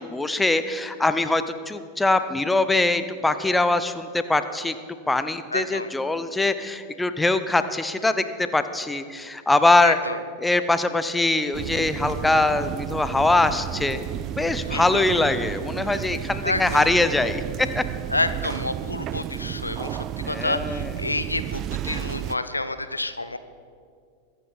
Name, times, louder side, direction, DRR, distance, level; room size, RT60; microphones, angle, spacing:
voice 1, 0.0-4.8 5.1-10.0 10.4-17.8 20.2-20.9, left 2 dB, 10° left, 11 dB, 0.7 m, -23 dB
voice 2, 5.5-5.9 9.8-10.2 14.7-15.0 16.4-16.9 18.1-23.4, left 2 dB, 80° left, 12 dB, 0.6 m, -28 dB
sound 1, 11.5-22.4, right 11 dB, 35° right, 0.4 m, -32 dB
22.5 x 9.3 x 4.2 m, 2.2 s
figure-of-eight pair, 90°, 0 cm